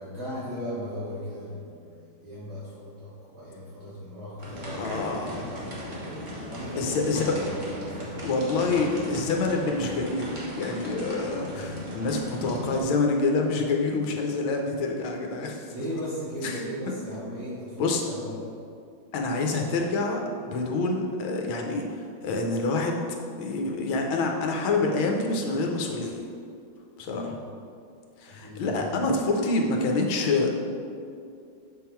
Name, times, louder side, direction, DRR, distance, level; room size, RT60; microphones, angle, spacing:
voice 1, 0.0-6.0 6.5-8.3 11.5-11.7 15.7-18.5 27.1-27.4 28.3-29.0, equal, 55° right, -9 dB, 1.6 m, -37 dB
sound 1, 4.4-12.8, equal, 30° right, 1.0 m, -37 dB
voice 2, 4.8-5.4 6.7-7.3 8.2-15.7 16.4-16.9 17.8-18.0 19.1-23.0 23.4-26.2 27.0-27.3 28.2-30.5, left 3 dB, 80° left, 2 dB, 1.6 m, -27 dB
7.1 x 3.7 x 4.4 m, 2.4 s
omnidirectional pair, 2.2 m